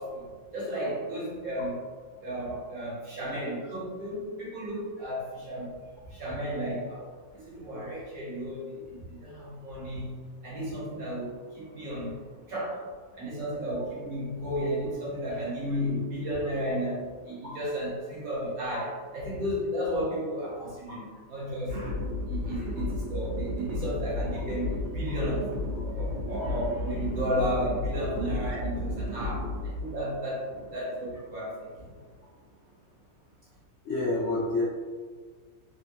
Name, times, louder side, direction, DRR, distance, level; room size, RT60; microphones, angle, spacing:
voice 1, 0.0-1.8 2.2-5.8 6.1-21.9 22.2-32.0, equal, 60° right, -6 dB, 1.1 m, -33 dB
sound 1, 21.7-31.7, left 1 dB, 90° right, 1.4 m, -33 dB
voice 2, 33.8-34.6, left 2 dB, 60° left, -9 dB, 0.8 m, -28 dB
3.3 x 2.6 x 2.8 m, 1.5 s
omnidirectional pair, 2.1 m